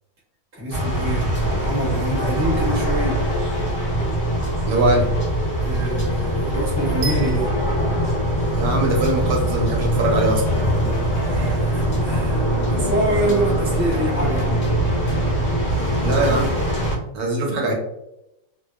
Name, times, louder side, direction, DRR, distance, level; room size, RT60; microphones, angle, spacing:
voice 1, 0.5-3.3 5.6-7.6 10.8-14.6, right 1 dB, 15° right, -5 dB, 0.4 m, -26 dB
sound 1, 0.7-17.0, right 1 dB, 50° left, 0.7 m, -22 dB
sound 2, 1.5-16.5, left 3 dB, 85° left, 0.5 m, -35 dB
voice 2, 4.7-5.1 8.5-10.4 16.0-16.5 17.1-17.7, right 2 dB, 70° right, 0 dB, 1.0 m, -21 dB
sound 3, 7.0-9.1, right 4 dB, 90° right, 1.3 m, -35 dB
2.8 x 2.1 x 2.2 m, 0.85 s
omnidirectional pair, 1.8 m